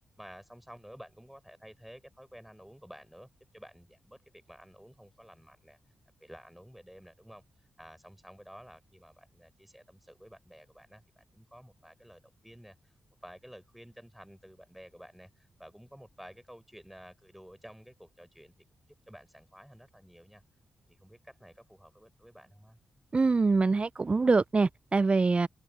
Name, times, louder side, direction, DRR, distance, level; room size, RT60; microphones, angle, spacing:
voice 1, 0.2-5.8 6.2-12.9 13.2-18.5 19.1-20.4 20.9-22.8, equal, 5° right, 5.9 m, -52 dB
voice 2, 23.1-25.5, right 3 dB, 35° right, 0.6 m, -24 dB
open air
supercardioid pair, 40°, 3 cm